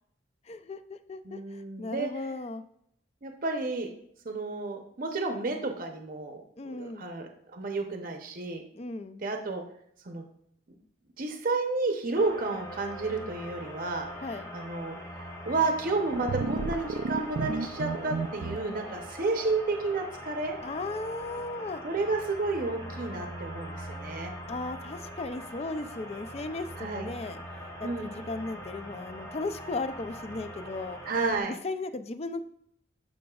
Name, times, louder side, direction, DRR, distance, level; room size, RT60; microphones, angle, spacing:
voice 1, 0.5-2.6 6.6-7.1 8.7-9.2 14.2-14.5 20.6-21.8 24.5-27.4 27.8-31.0 31.6-32.4, left 3 dB, 35° left, 11 dB, 0.4 m, -36 dB
voice 2, 1.2-2.1 3.2-3.9 4.2-6.4 6.6-8.6 9.2-9.6 10.0-10.2 11.2-14.1 14.5-15.0 15.4-20.6 21.8-24.3 26.8-27.1 27.8-28.1 31.1-31.5, right 3 dB, 45° right, 4 dB, 0.7 m, -31 dB
sound 1, 12.1-31.4, equal, 15° left, 1.0 m, -42 dB
sound 2, 16.1-18.6, right 4 dB, 65° right, 0.4 m, -32 dB
11.5 x 5.2 x 2.3 m, 0.70 s
head